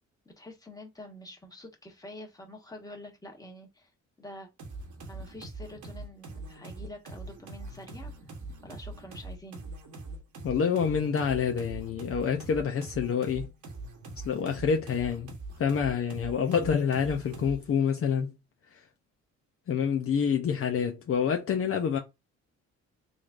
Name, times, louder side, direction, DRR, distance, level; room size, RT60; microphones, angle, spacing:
voice 1, 0.4-3.9 4.2-4.5 5.1-8.1 8.6-9.7, left 1 dB, 10° left, 1.4 m, -46 dB
sound 1, 4.6-17.7, right 2 dB, 75° right, 1.2 m, -43 dB
voice 2, 10.4-13.5 14.1-15.3 15.6-18.3 18.7-18.9 19.7-22.0, left 7 dB, 45° left, 0.7 m, -27 dB
3.9 x 3.3 x 2.5 m
cardioid pair, 90°, 30 cm